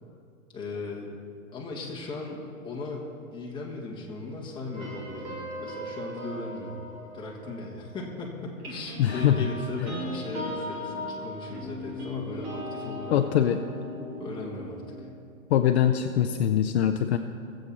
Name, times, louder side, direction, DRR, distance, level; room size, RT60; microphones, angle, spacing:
voice 1, 0.5-1.2 1.5-6.8 7.1-13.2 14.2-15.1, left 3 dB, 10° left, -3 dB, 1.8 m, -37 dB
sound 1, 4.7-8.1 8.6-15.1, left 1 dB, 35° right, 2.6 m, -38 dB
voice 2, 9.0-9.4 13.1-13.6 15.5-17.2, left 10 dB, 55° left, 7 dB, 0.6 m, -23 dB
20.0 x 7.9 x 4.2 m, 2.4 s
hypercardioid pair, 145°, 41 cm